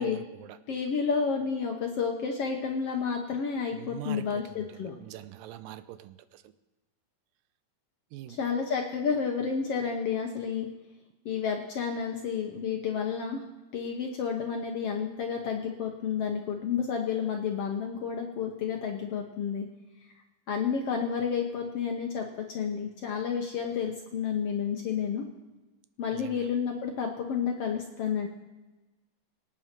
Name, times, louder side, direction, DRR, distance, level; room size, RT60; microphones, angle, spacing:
voice 1, 0.0-0.6 3.7-6.5 8.1-8.5 26.1-26.5, right 12 dB, 85° right, 13 dB, 2.4 m, -44 dB
voice 2, 0.7-4.9 8.3-10.7 11.2-13.4 13.7-19.7 20.5-25.2 26.0-28.3, left 6 dB, 65° left, 2 dB, 1.6 m, -30 dB
24.5 x 8.9 x 4.5 m, 1.1 s
omnidirectional pair, 4.0 m